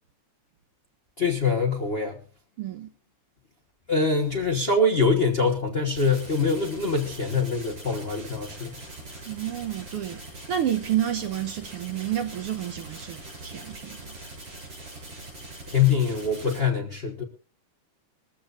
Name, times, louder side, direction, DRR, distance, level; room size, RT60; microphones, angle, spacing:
voice 1, 1.2-2.2 3.9-8.7 15.7-17.2, left 4 dB, 70° left, 0.5 m, -24 dB
voice 2, 2.6-2.9 9.3-14.0, right 11 dB, 70° right, 1.4 m, -30 dB
sound 1, 6.0-16.6, right 2 dB, 50° right, 8.5 m, -42 dB
20.5 x 15.0 x 2.5 m
omnidirectional pair, 3.5 m